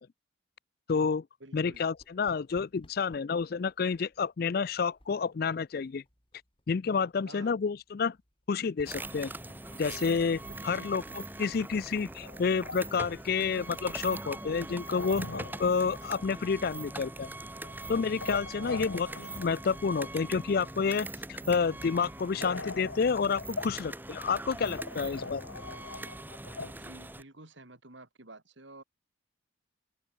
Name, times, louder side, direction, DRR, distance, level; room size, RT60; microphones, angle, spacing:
voice 1, 0.9-1.2 1.5-6.0 6.7-8.2 8.5-9.3 9.8-17.3 17.9-19.1 19.3-25.4, left 5 dB, 50° left, 0.4 m, -29 dB
voice 2, 1.4-1.8 7.2-7.6 10.5-11.0 18.6-18.9 26.7-28.8, right 2 dB, 65° right, 3.0 m, -50 dB
sound 1, 1.7-17.8, left 1 dB, 25° left, 7.4 m, -64 dB
sound 2, 8.8-27.2, right 2 dB, 10° right, 2.3 m, -42 dB
sound 3, 9.1-9.7 10.0-10.2 10.7-10.8 11.0-11.1 12.2-13.0 14.0-16.1 16.3-16.8 17.6-19.5 19.8-20.2 22.4-23.9 24.3-24.4 24.6-26.7, left 3 dB, 75° left, 2.1 m, -41 dB
open air
head